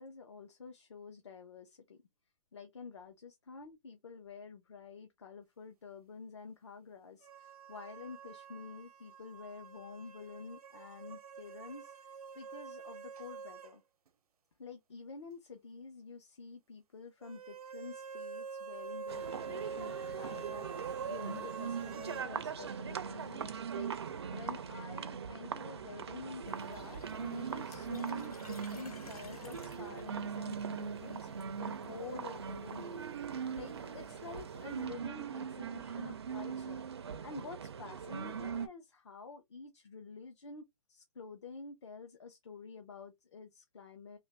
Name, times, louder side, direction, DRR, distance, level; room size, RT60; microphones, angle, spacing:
voice 1, 0.0-2.0 2.5-13.8 14.6-44.2, left 4 dB, 50° left, 0.7 m, -49 dB
sound 1, 7.2-13.8 14.1-14.2 17.2-22.3, right 6 dB, 90° right, 0.6 m, -46 dB
sound 2, 19.1-38.7, right 7 dB, 45° right, 0.4 m, -40 dB
sound 3, 26.4-34.9, left 6 dB, 90° left, 0.8 m, -56 dB
2.9 x 2.5 x 3.2 m
hypercardioid pair, 180°, 19 cm